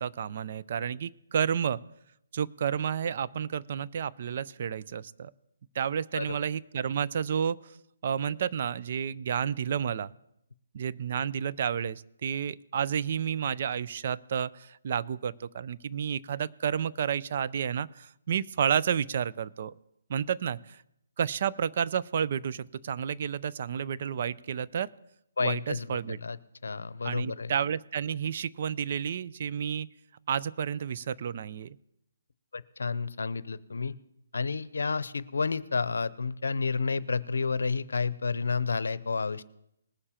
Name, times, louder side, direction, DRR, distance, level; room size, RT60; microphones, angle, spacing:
voice 1, 0.0-1.8 2.3-5.3 5.7-7.6 8.0-10.1 10.7-19.7 20.1-20.8 21.2-24.9 25.4-26.2 27.0-29.9 30.3-31.8, right 8 dB, 50° right, 16 dB, 0.5 m, -31 dB
voice 2, 25.4-27.5 32.5-33.9 34.3-39.4, left 4 dB, 85° left, 18 dB, 0.7 m, -30 dB
20.0 x 6.8 x 4.4 m, 0.78 s
hypercardioid pair, 155°, 0 cm